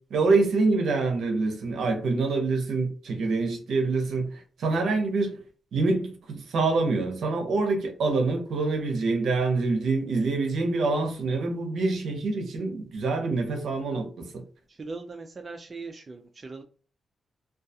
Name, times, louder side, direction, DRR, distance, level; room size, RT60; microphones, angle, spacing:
voice 1, 0.1-5.4 5.7-14.4, right 3 dB, 80° right, 0.7 m, -26 dB
voice 2, 13.7-14.1 14.7-16.6, right 3 dB, 35° right, 0.3 m, -40 dB
2.3 x 2.2 x 2.7 m
cardioid pair, 95°, 0 cm